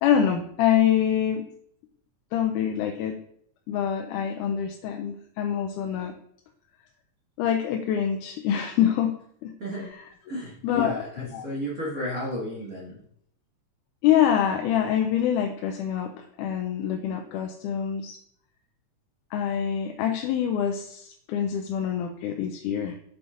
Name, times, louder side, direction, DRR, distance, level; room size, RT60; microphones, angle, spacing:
voice 1, 0.0-1.5 2.3-3.2 3.7-6.1 7.4-9.1 9.4-10.1 10.6-11.4 14.0-18.2 19.3-23.0, left 9 dB, 85° left, 4 dB, 2.1 m, -25 dB
voice 2, 10.3-13.0, equal, 35° right, -7 dB, 1.6 m, -33 dB
7.7 x 7.2 x 2.5 m, 0.67 s
omnidirectional pair, 3.5 m